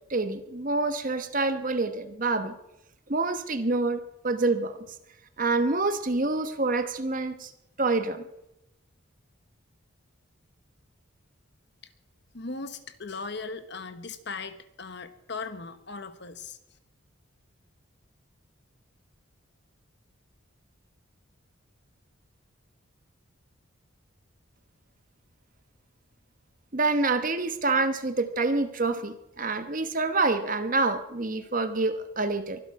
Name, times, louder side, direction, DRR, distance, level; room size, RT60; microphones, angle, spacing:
voice 1, 0.1-2.5 3.1-4.0 4.2-4.7 5.4-7.5 7.8-8.2 26.7-32.6, right 3 dB, 40° right, 9 dB, 1.1 m, -27 dB
voice 2, 12.3-16.6, left 4 dB, 55° left, 10 dB, 1.1 m, -38 dB
23.5 x 12.0 x 4.8 m, 0.85 s
head